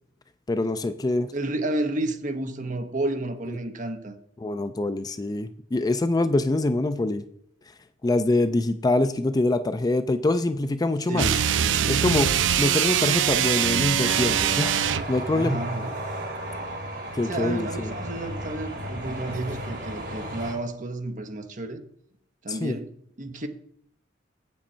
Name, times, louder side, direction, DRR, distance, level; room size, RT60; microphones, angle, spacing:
voice 1, 0.5-1.3 4.4-7.2 8.0-11.3 11.9-14.7 15.1-15.6 17.2-17.9 22.5-22.8, left 2 dB, 20° left, 0.4 m, -24 dB
voice 2, 1.3-4.1 11.1-12.0 15.3-16.0 17.2-21.8 22.4-22.9 23.2-23.5, right 2 dB, 45° right, 1.0 m, -31 dB
sound 1, 11.1-15.1, right 9 dB, 80° right, 0.5 m, -23 dB
sound 2, 14.0-20.5, right 1 dB, 60° right, 3.4 m, -34 dB
8.3 x 7.5 x 4.4 m
head